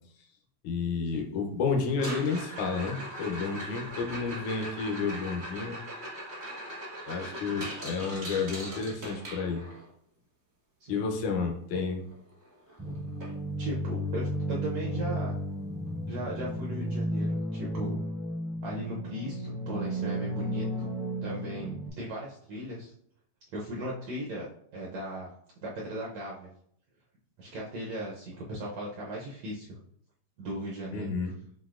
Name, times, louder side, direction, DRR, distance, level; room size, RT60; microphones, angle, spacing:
voice 1, 0.6-5.8 7.1-9.6 10.9-12.1 30.9-31.3, left 5 dB, 75° left, 3 dB, 2.0 m, -31 dB
sound 1, 1.9-9.9 12.1-12.2 12.5-12.8 13.2-13.3 13.9-14.0 15.9-16.0, equal, 50° right, 0.8 m, -40 dB
sound 2, 12.8-21.9, equal, 20° right, 0.5 m, -33 dB
voice 2, 13.6-15.4 16.1-18.0 18.6-20.9 21.2-22.9 23.5-24.4 24.7-25.3 25.6-26.5 27.4-29.8 30.4-31.3, right 1 dB, 75° right, -4 dB, 1.6 m, -37 dB
7.4 x 2.7 x 2.4 m, 0.67 s
omnidirectional pair, 3.7 m